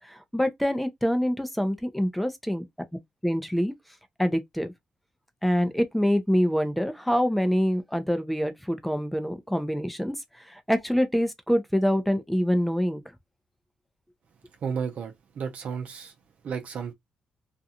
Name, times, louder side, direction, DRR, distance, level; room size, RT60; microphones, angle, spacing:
voice 1, 0.0-2.6 3.2-3.7 4.2-4.7 5.4-10.1 10.5-13.0, equal, ahead, 0.6 m, -25 dB
voice 2, 14.6-16.1 16.4-16.9, right 6 dB, 65° right, 0.7 m, -33 dB
2.6 x 2.3 x 2.8 m
cardioid pair, 75°, 3 cm